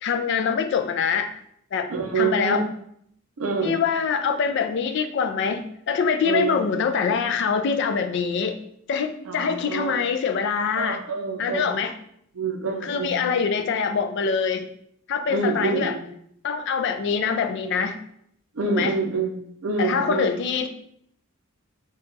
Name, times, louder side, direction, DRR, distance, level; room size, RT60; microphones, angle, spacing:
voice 1, 0.0-1.3 1.7-2.6 3.6-8.6 8.9-11.0 11.4-11.9 12.8-14.7 15.1-15.9 16.4-18.0 18.7-18.9 19.8-20.7, left 6 dB, 55° left, 8 dB, 0.3 m, -24 dB
voice 2, 1.9-2.6 3.4-3.8 6.3-6.7 9.3-10.0 10.8-11.7 12.3-13.4 15.3-16.1 18.5-20.3, right 4 dB, 80° right, 3 dB, 0.6 m, -27 dB
2.8 x 2.3 x 3.8 m, 0.70 s
head